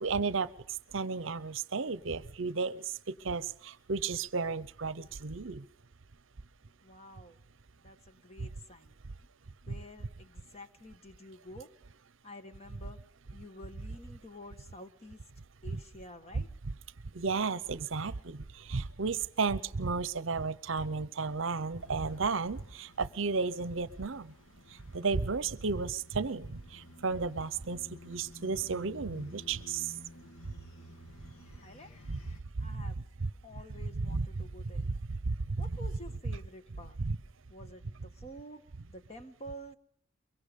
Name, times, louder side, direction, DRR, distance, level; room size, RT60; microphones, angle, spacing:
voice 1, 0.0-5.6 16.3-16.4 17.1-24.3 24.7-29.9 32.1-32.2 32.6-32.8 34.0-34.3 35.1-35.6 37.0-37.2, right 4 dB, 65° right, 18 dB, 0.8 m, -33 dB
voice 2, 6.8-7.4 7.8-8.9 9.7-11.7 12.2-13.0 13.3-15.2 15.6-16.5 31.5-32.0 32.6-33.0 33.4-34.8 35.6-37.0 37.5-38.6 38.9-39.8, equal, 30° left, 8 dB, 1.6 m, -49 dB
sound 1, 21.8-32.4, left 1 dB, 85° left, 2.1 m, -53 dB
23.5 x 23.5 x 5.3 m, 0.66 s
head